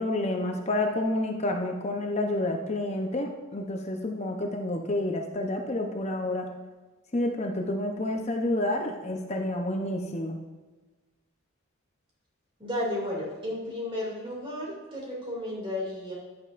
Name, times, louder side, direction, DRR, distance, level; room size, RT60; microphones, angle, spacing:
voice 1, 0.0-6.5 7.1-10.4, left 1 dB, 30° left, 3 dB, 0.7 m, -29 dB
voice 2, 12.6-16.1, left 1 dB, 20° right, -4 dB, 2.5 m, -33 dB
10.5 x 8.5 x 2.5 m, 1.3 s
head